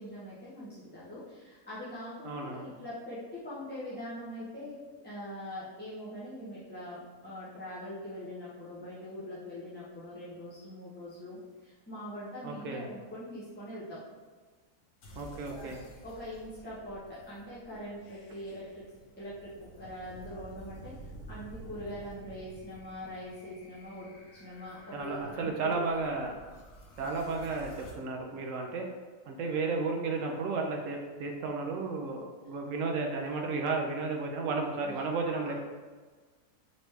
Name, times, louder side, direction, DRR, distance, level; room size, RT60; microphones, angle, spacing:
voice 1, 0.0-3.2 3.4-4.8 5.0-14.0 15.5-15.7 16.0-18.8 19.2-24.1 24.4-25.8 34.8-35.0, equal, 10° left, -11 dB, 0.7 m, -43 dB
voice 2, 2.2-2.7 12.4-12.9 15.2-15.8 24.9-26.4 27.0-28.8 29.3-35.6, right 3 dB, 70° right, 2 dB, 0.9 m, -33 dB
sound 1, 15.0-27.9, right 1 dB, 80° left, 1.3 m, -51 dB
4.0 x 3.1 x 3.2 m, 1.4 s
omnidirectional pair, 1.6 m